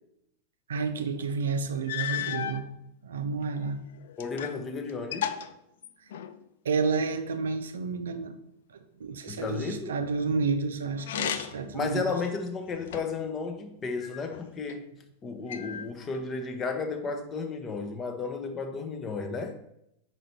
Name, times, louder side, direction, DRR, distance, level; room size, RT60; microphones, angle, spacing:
voice 1, 0.7-2.7 3.0-3.8 6.6-8.4 8.7-12.2, right 4 dB, 65° right, 8 dB, 0.5 m, -30 dB
sound 1, 1.3-1.4 1.9-2.6 3.4-4.6 4.9-6.4 11.0-11.7 12.3-13.3 14.0-14.8 15.5-16.3, left 10 dB, 60° left, 0.4 m, -35 dB
voice 2, 4.2-5.4 9.3-10.0 11.7-14.8 15.2-19.5, left 4 dB, 25° left, 6 dB, 0.7 m, -33 dB
5.0 x 4.4 x 4.4 m, 0.80 s
figure-of-eight pair, 90°, 0 cm